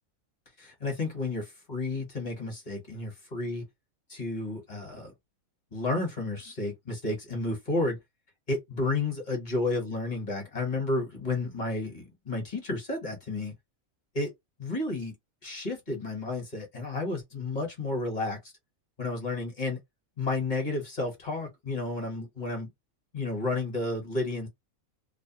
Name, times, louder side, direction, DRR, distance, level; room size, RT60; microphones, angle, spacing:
voice 1, 0.6-3.6 4.1-5.1 5.7-8.0 8.5-13.5 14.1-14.3 14.6-15.1 15.4-18.5 19.0-19.8 20.2-22.7 23.1-24.5, left 2 dB, 35° left, 1.1 m, -31 dB
2.5 x 2.1 x 2.8 m
omnidirectional pair, 1.5 m